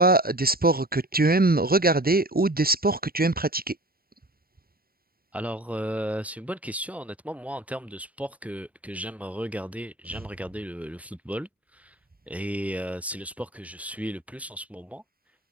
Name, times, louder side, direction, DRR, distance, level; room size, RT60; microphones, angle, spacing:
voice 1, 0.0-3.6, right 2 dB, 20° right, 1.9 m, -22 dB
voice 2, 5.3-12.0 12.3-15.0, equal, 5° right, 7.6 m, -34 dB
wide cardioid pair, 105°, 45 cm